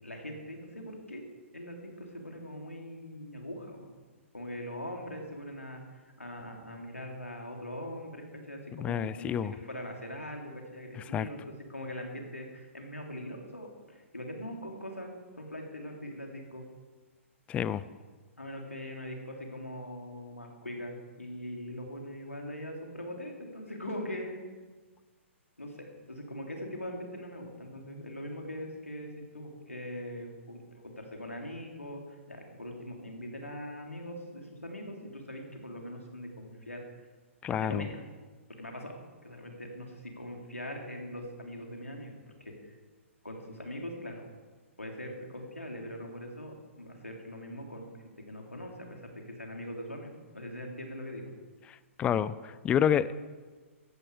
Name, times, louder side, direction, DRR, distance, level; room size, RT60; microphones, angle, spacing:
voice 1, 0.0-1.2 1.5-3.9 4.3-16.6 18.4-24.4 25.6-36.8 37.5-38.0 38.6-42.8 43.2-44.3 44.8-51.3, equal, 85° left, 1 dB, 3.5 m, -42 dB
voice 2, 8.7-9.5 11.1-11.3 17.5-17.8 37.4-37.9 51.7-53.1, left 9 dB, 15° left, 17 dB, 0.5 m, -29 dB
16.5 x 14.5 x 5.0 m, 1.4 s
figure-of-eight pair, 120°, 7 cm